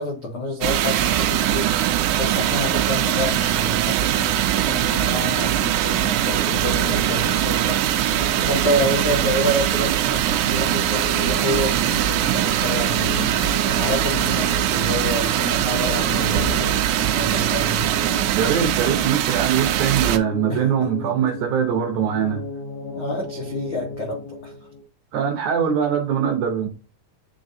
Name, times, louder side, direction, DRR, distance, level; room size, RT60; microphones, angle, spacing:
voice 1, 0.0-1.7 2.2-7.9 8.5-13.4 13.7-17.9 20.5-21.1 22.9-24.5, left 1 dB, 75° left, 1.2 m, -28 dB
sound 1, 0.6-20.2, right 12 dB, 90° right, 1.8 m, -21 dB
sound 2, 6.0-24.8, left 3 dB, 55° left, 1.2 m, -36 dB
voice 2, 18.3-22.4 25.1-26.7, right 8 dB, 70° right, 1.9 m, -22 dB
9.6 x 3.8 x 2.6 m
omnidirectional pair, 4.3 m